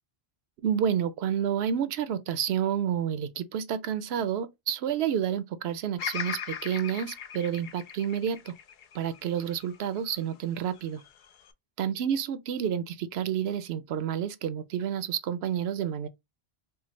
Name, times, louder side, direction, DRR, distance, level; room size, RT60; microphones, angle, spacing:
voice 1, 0.6-8.5 8.9-11.0 11.8-16.1, right 9 dB, 80° right, 0.8 m, -29 dB
Bird vocalization bird call bird song, 6.0-10.2 10.8-11.5, left 8 dB, 60° left, 0.6 m, -38 dB
4.5 x 2.1 x 3.1 m
omnidirectional pair, 1.1 m